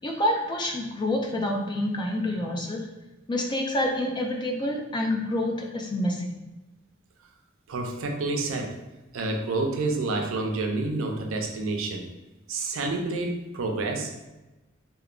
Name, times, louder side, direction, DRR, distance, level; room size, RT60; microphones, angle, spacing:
voice 1, 0.0-2.8 3.3-6.4, left 1 dB, 20° left, 1 dB, 0.3 m, -27 dB
voice 2, 7.7-8.8 9.1-12.0 12.5-14.3, right 3 dB, 85° right, 2 dB, 0.4 m, -29 dB
2.9 x 2.1 x 2.4 m, 1.1 s
head